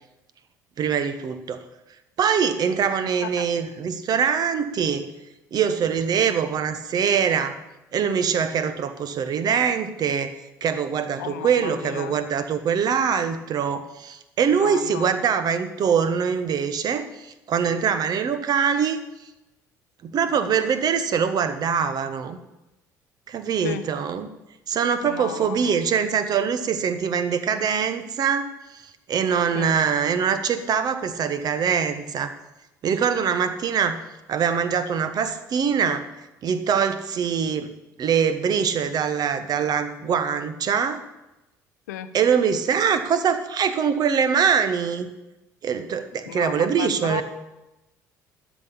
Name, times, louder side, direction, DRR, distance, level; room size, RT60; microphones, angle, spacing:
voice 1, 0.8-1.6 2.2-5.1 5.5-7.6 7.9-10.3 10.6-19.0 20.0-22.4 23.3-24.3 24.7-28.8 29.1-32.3 32.8-34.0 34.3-36.0 36.4-37.7 38.0-41.0 42.1-45.1 45.6-47.2, right 7 dB, 45° right, 11 dB, 1.2 m, -23 dB
voice 2, 11.2-12.1 14.5-15.1 23.6-23.8 25.0-26.1 29.5-29.7 41.9-42.1 46.3-47.2, left 12 dB, 70° left, 10 dB, 0.9 m, -34 dB
12.0 x 6.2 x 8.5 m, 0.97 s
figure-of-eight pair, 55°, 9 cm